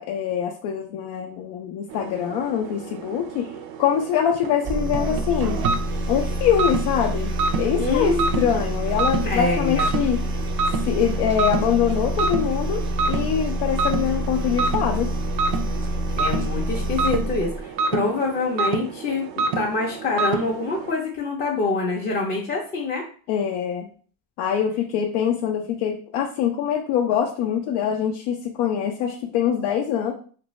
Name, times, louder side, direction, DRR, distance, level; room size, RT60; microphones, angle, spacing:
voice 1, 0.0-3.5 3.8-5.6 6.1-10.2 10.8-15.1 23.3-23.9 24.4-30.1, left 8 dB, 85° left, 1 dB, 0.5 m, -24 dB
sound 1, 1.9-20.9, right 4 dB, 85° right, 0.5 m, -29 dB
sound 2, 4.6-17.6, equal, 30° right, 0.4 m, -27 dB
voice 2, 7.8-8.5 9.2-9.9 16.2-23.0, left 3 dB, 25° left, -3 dB, 0.5 m, -25 dB
3.1 x 2.6 x 3.0 m, 0.43 s
cardioid pair, 135°, 40 cm